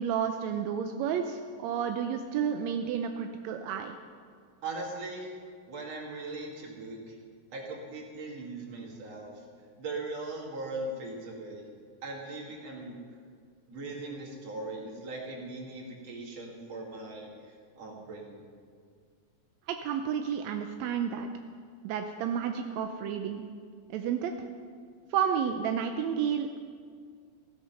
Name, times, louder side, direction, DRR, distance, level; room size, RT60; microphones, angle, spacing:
voice 1, 0.0-4.0 19.7-21.3 21.8-23.5 23.9-24.3 25.1-26.6, right 8 dB, 75° right, 5 dB, 1.7 m, -31 dB
voice 2, 4.6-5.3 5.7-7.1 7.5-9.3 9.8-11.6 12.0-13.0 13.7-18.4, right 2 dB, 55° right, -1 dB, 3.3 m, -39 dB
15.5 x 13.5 x 5.7 m, 2.1 s
omnidirectional pair, 3.6 m